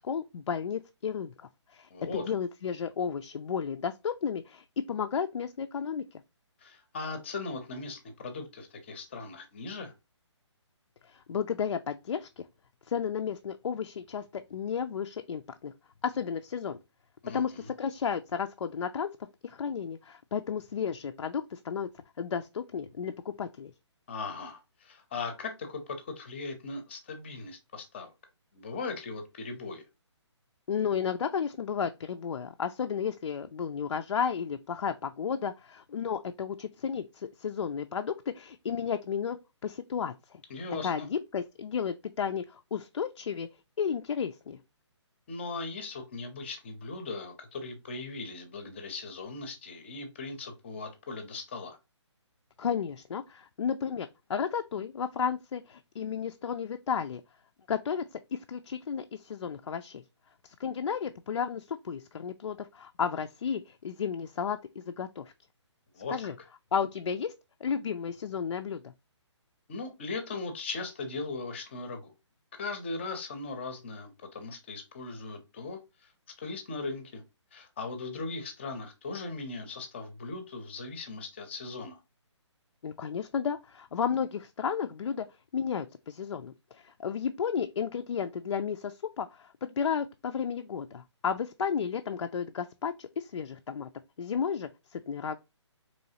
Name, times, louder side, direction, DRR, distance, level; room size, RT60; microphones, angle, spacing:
voice 1, 0.0-1.3 1.7-1.9 2.2-6.2 11.0-12.5 12.9-15.7 16.0-16.8 17.3-19.1 19.4-21.9 22.2-23.7 30.7-40.4 40.8-43.5 43.8-44.6 52.6-57.2 57.7-60.0 60.4-65.3 66.1-66.3 66.7-67.3 67.6-68.9 82.8-85.3 85.5-93.9 94.2-95.4, left 7 dB, 80° left, 0.4 m, -33 dB
voice 2, 1.9-2.2 6.6-9.9 17.2-17.7 24.1-28.1 28.5-29.8 40.5-41.1 45.3-51.8 65.9-66.3 69.7-72.1 72.5-76.1 76.4-77.2 77.5-82.0, left 3 dB, 25° left, 0.6 m, -39 dB
4.1 x 3.1 x 2.8 m
hypercardioid pair, 165°, 15 cm